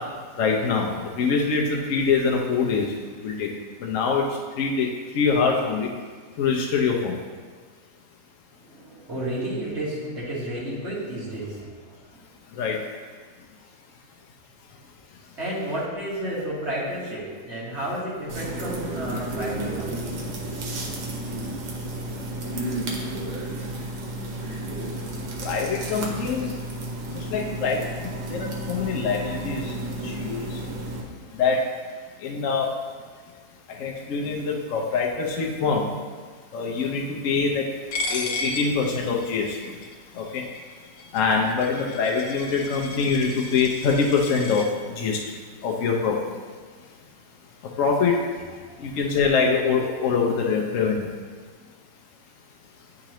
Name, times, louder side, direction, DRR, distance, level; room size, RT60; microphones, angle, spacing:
voice 1, 0.4-2.9 3.2-3.5 3.8-4.2 4.6-4.9 5.1-5.9 6.4-7.1 12.6-12.8 25.4-26.5 27.3-27.8 28.3-29.6 30.0-30.4 31.4-31.6 32.2-32.7 33.8-35.9 36.5-37.6 38.1-39.5 40.2-40.4 41.1-44.6 45.0-45.2 45.6-46.2 47.8-48.1 48.8-51.1, left 5 dB, 65° left, -1 dB, 0.8 m, -24 dB
voice 2, 8.6-11.8 15.4-20.2 48.6-48.8, right 1 dB, 40° right, -7 dB, 1.7 m, -31 dB
sound 1, 18.3-31.0, right 1 dB, 75° right, 1.6 m, -32 dB
Coin (dropping), 37.9-44.7, left 2 dB, 80° left, 1.4 m, -34 dB
9.9 x 3.8 x 3.0 m, 1.5 s
omnidirectional pair, 1.9 m